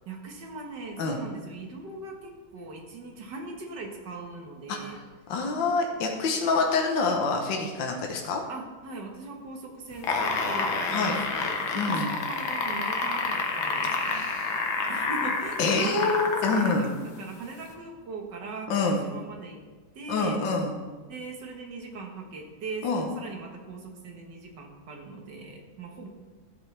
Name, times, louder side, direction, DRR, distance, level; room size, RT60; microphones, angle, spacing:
voice 1, 0.1-5.0 8.5-14.3 14.9-19.6 20.0-20.4 21.1-26.1, right 3 dB, 60° right, 1 dB, 1.9 m, -40 dB
voice 2, 4.7-5.0 5.3-8.4 10.9-11.1 11.7-12.1 14.0-14.7 15.6-16.9 18.7-19.0 20.1-20.7 22.8-23.1, left 4 dB, 70° left, 1 dB, 1.7 m, -26 dB
sound 1, 9.9-16.9 17.7-17.8, left 4 dB, 90° left, 1.9 m, -28 dB
13.0 x 7.5 x 3.4 m, 1.4 s
omnidirectional pair, 2.1 m